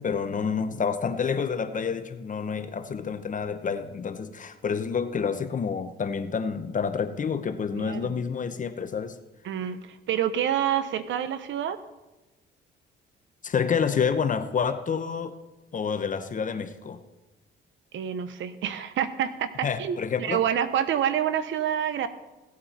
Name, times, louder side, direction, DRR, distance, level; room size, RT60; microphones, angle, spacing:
voice 1, 0.0-9.2 13.4-15.3 15.7-17.0 19.6-20.4, left 6 dB, 40° left, 9 dB, 0.9 m, -28 dB
voice 2, 7.8-8.1 9.4-11.8 17.9-22.1, right 9 dB, 75° right, 12 dB, 0.9 m, -28 dB
16.0 x 8.6 x 4.3 m, 1.1 s
cardioid pair, 90°, 20 cm